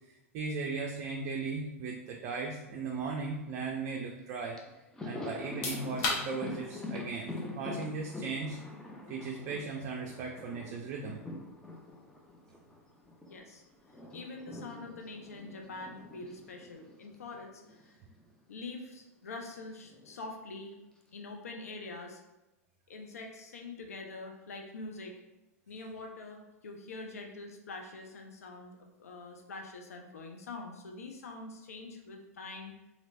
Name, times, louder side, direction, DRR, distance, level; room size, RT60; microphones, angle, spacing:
voice 1, 0.3-4.6 5.0-8.6 9.1-11.2 12.5-12.6, right 4 dB, 45° right, 1 dB, 0.4 m, -37 dB
Thunder, 4.2-4.3 4.6-13.4 13.6-18.0 18.2-18.4 19.5-20.2, left 2 dB, 10° left, 0.5 m, -45 dB
sound 1, 5.4-18.0, left 3 dB, 50° left, 1.0 m, -45 dB
voice 2, 13.3-13.6 14.1-17.9 18.5-20.8 21.1-22.2 22.9-25.2 25.7-32.8, left 3 dB, 75° left, 3 dB, 0.5 m, -45 dB
3.0 x 2.8 x 2.6 m, 1.0 s
hypercardioid pair, 95°, 8 cm